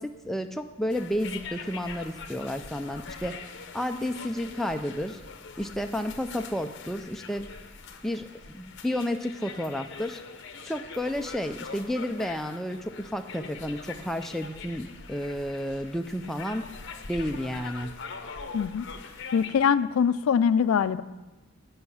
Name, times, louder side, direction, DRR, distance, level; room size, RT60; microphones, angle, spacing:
voice 1, 0.0-3.3 3.7-5.2 5.6-7.5 8.0-10.2 10.6-16.6 17.1-17.9, equal, ahead, 5 dB, 0.3 m, -31 dB
sound 1, 0.9-19.5, left 5 dB, 55° left, 0.7 m, -43 dB
voice 2, 18.5-18.9 19.3-21.0, left 7 dB, 80° left, 15 dB, 0.3 m, -23 dB
8.0 x 5.6 x 7.0 m, 1.1 s
head